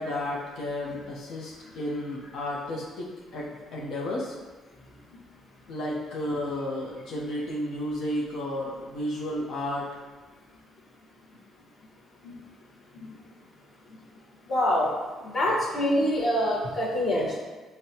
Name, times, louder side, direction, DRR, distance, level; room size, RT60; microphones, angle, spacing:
voice 1, 0.0-3.1 3.3-4.4 5.7-9.9, left 1 dB, 70° left, -4 dB, 0.7 m, -32 dB
voice 2, 14.5-14.9 15.2-17.4, left 1 dB, 30° left, -4 dB, 1.0 m, -25 dB
6.4 x 2.1 x 2.8 m, 1.3 s
cardioid pair, 130°, 0 cm